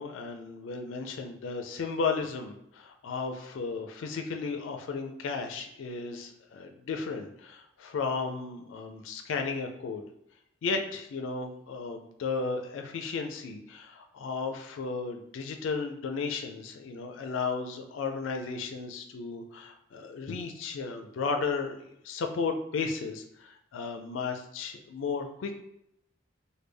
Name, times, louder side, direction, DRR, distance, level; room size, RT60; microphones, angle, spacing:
voice 1, 0.0-10.0 10.6-25.5, left 4 dB, 70° left, 4 dB, 0.4 m, -34 dB
3.3 x 2.2 x 3.3 m, 0.79 s
head